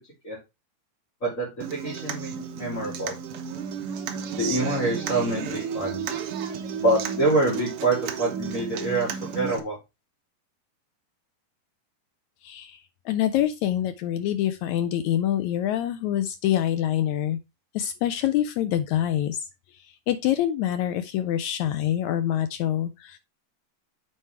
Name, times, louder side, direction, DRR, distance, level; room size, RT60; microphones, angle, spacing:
voice 1, 1.2-3.1 4.4-6.2 6.7-9.8, right 2 dB, 25° left, 2.8 m, -26 dB
Human voice / Acoustic guitar, 1.6-9.6, right 7 dB, 70° right, 1.4 m, -33 dB
voice 2, 12.4-17.4 17.7-19.5 19.7-23.2, left 11 dB, 85° left, 1.6 m, -26 dB
7.6 x 4.7 x 4.5 m
omnidirectional pair, 3.8 m